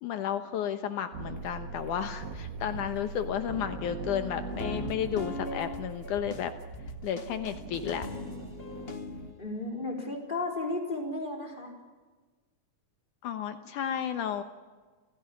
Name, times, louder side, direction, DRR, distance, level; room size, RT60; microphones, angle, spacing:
voice 1, 0.0-6.5 7.0-8.1 13.2-14.4, left 9 dB, 75° left, 9 dB, 2.6 m, -32 dB
sound 1, 1.1-9.3, right 3 dB, 50° right, 1.1 m, -41 dB
sound 2, 4.5-9.4, left 2 dB, 55° left, 0.6 m, -40 dB
voice 2, 9.4-11.7, left 2 dB, 15° left, 2 dB, 4.5 m, -34 dB
28.5 x 17.5 x 9.8 m, 1.4 s
omnidirectional pair, 3.6 m